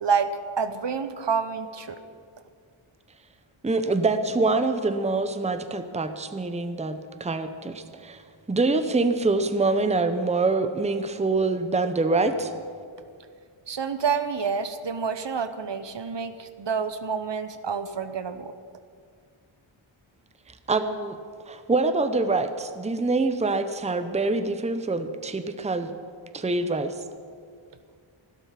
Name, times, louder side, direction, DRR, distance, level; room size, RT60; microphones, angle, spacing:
voice 1, 0.6-2.0 13.7-18.5, right 6 dB, 60° right, 11 dB, 0.8 m, -28 dB
voice 2, 3.6-8.2 8.5-12.5 20.7-21.2 21.5-25.9 26.3-27.0, right 3 dB, 15° right, 9 dB, 0.7 m, -25 dB
15.0 x 12.5 x 5.8 m, 2.2 s
wide cardioid pair, 100°, 49 cm